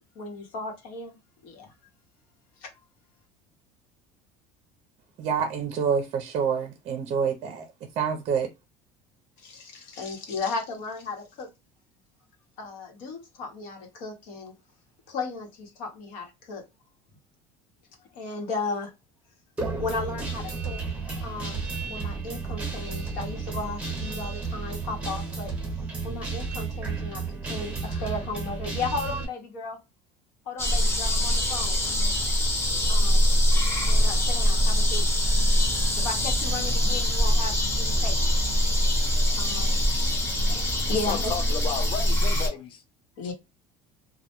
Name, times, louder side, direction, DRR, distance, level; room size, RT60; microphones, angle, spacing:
voice 1, 0.1-1.2 1.4-1.7 2.6-2.7 9.4-11.5 12.6-14.5 15.1-16.6 18.1-18.9 19.8-25.5 26.0-29.8 30.5-31.8 32.9-33.3 33.8-35.1 36.0-38.2 39.4-39.8 40.0-41.3 43.2-43.3, left 3 dB, 80° left, 1.0 m, -35 dB
voice 2, 5.2-7.7 8.0-8.5, right 6 dB, 45° right, 0.5 m, -27 dB
Guitar, 19.6-29.3, right 4 dB, 10° right, 0.8 m, -32 dB
sound 1, 30.6-42.5, equal, 20° left, 0.8 m, -23 dB
voice 3, 40.9-42.8, left 7 dB, 40° left, 0.4 m, -33 dB
2.1 x 2.1 x 2.9 m
cardioid pair, 135°, 14 cm